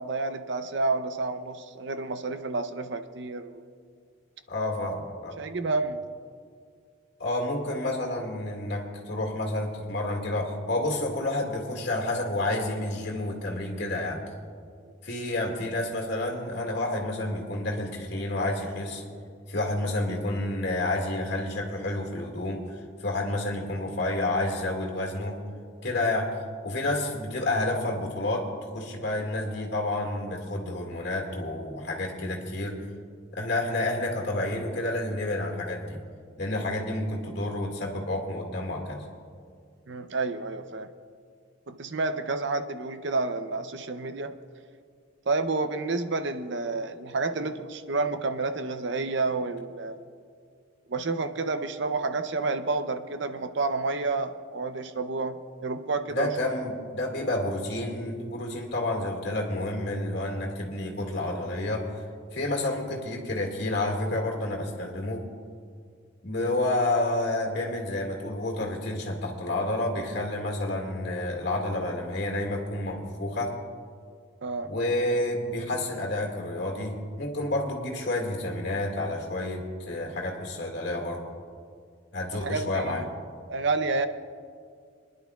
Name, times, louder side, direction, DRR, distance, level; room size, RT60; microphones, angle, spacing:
voice 1, 0.0-3.6 5.4-6.0 39.9-40.9 41.7-44.4 45.3-50.0 50.9-56.3 74.4-74.7 82.3-83.1 83.5-84.1, right 3 dB, 55° right, 9 dB, 0.6 m, -30 dB
voice 2, 4.5-5.4 7.2-14.2 15.0-19.0 19.5-22.7 23.0-25.4 25.8-26.4 26.6-32.8 33.3-36.0 36.4-39.0 56.1-61.9 62.3-65.3 66.2-73.6 74.6-81.2 82.1-83.0, left 1 dB, 55° left, 1 dB, 2.0 m, -29 dB
27.5 x 10.5 x 2.4 m, 2.2 s
head